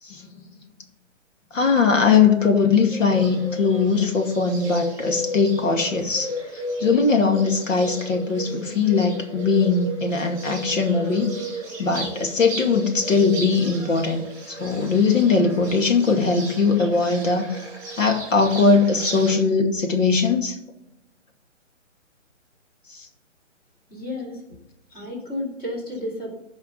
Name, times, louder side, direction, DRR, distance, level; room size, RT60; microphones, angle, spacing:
voice 1, 0.0-0.4 1.5-11.3 11.8-17.6 18.0-20.6 22.9-23.1, left 4 dB, 80° left, 3 dB, 2.4 m, -20 dB
Bird, 2.9-19.3, right 1 dB, 10° right, 3.7 m, -34 dB
voice 2, 23.9-24.4 24.9-26.3, left 1 dB, 20° left, -3 dB, 2.8 m, -31 dB
14.5 x 5.6 x 5.6 m, 0.85 s
hypercardioid pair, 170°, 38 cm